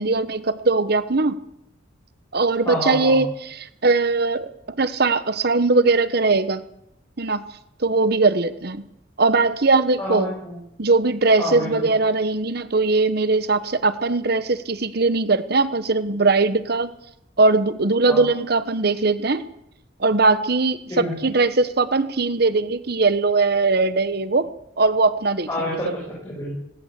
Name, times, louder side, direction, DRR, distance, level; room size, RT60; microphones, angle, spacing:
voice 1, 0.0-1.4 2.3-3.3 3.6-4.5 4.8-6.6 7.2-7.4 7.8-8.8 9.2-10.3 10.8-16.9 17.4-19.4 20.0-24.5 24.8-25.7, right 3 dB, 55° right, 13 dB, 1.2 m, -20 dB
voice 2, 2.7-3.2 10.0-10.5 11.4-11.9 18.1-18.3 20.9-21.1 25.5-26.5, left 1 dB, 15° left, -4 dB, 7.4 m, -28 dB
20.5 x 18.0 x 8.3 m, 0.77 s
head